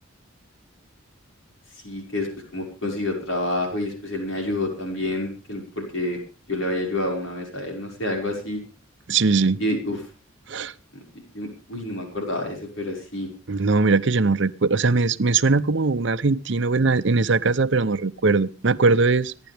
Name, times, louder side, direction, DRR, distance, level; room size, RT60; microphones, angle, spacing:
voice 1, 1.8-6.2 6.5-8.6 9.6-10.0 10.9-11.0 11.3-13.3, left 1 dB, 75° left, 5.4 m, -28 dB
voice 2, 9.1-9.6 10.5-10.7 13.5-19.3, right 4 dB, 60° right, 0.7 m, -20 dB
25.5 x 10.5 x 3.4 m
head